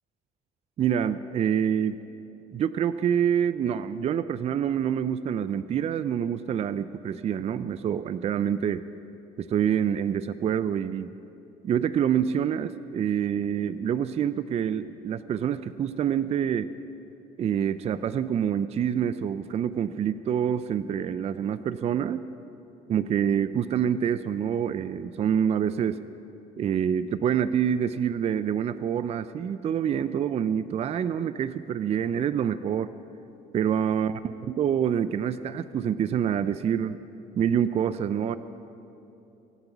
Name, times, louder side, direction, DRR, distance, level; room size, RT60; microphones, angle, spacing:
voice 1, 0.8-2.0 2.5-8.9 9.4-11.1 11.6-16.7 17.4-22.2 22.9-26.0 26.6-32.9 33.5-34.1 34.5-37.0 37.4-38.4, right 8 dB, 40° right, 14 dB, 0.4 m, -26 dB
23.0 x 8.0 x 6.0 m, 2.9 s
cardioid pair, 110°, 17 cm